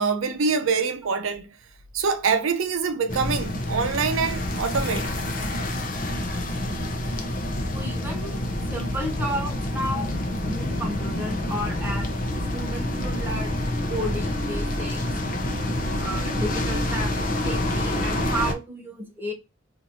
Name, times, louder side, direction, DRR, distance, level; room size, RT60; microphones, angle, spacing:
voice 1, 0.0-1.5 1.9-5.1, right 5 dB, 80° right, 0.5 m, -25 dB
sound 1, 3.1-18.5, left 1 dB, 40° left, 0.6 m, -27 dB
voice 2, 7.7-12.1 12.5-13.6 13.9-15.0 16.0-19.3, equal, 10° right, 0.7 m, -33 dB
2.9 x 2.5 x 2.6 m
head